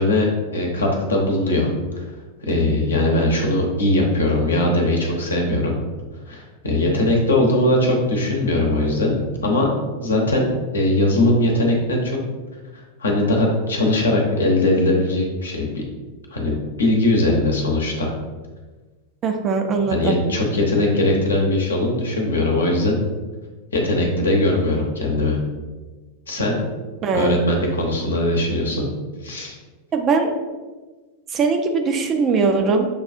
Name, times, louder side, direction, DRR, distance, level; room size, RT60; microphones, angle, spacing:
voice 1, 0.0-1.7 2.0-2.1 2.4-5.7 6.3-12.2 13.0-15.8 16.3-18.1 19.9-23.0 23.7-25.4 26.3-26.6 27.1-28.8 29.2-29.6, left 1 dB, 70° left, 0 dB, 0.8 m, -20 dB
voice 2, 19.2-20.2 27.0-27.4 29.9-30.3 31.3-32.9, right 4 dB, 30° right, 4 dB, 0.5 m, -20 dB
6.7 x 2.3 x 2.6 m, 1.3 s
figure-of-eight pair, 90°, 0 cm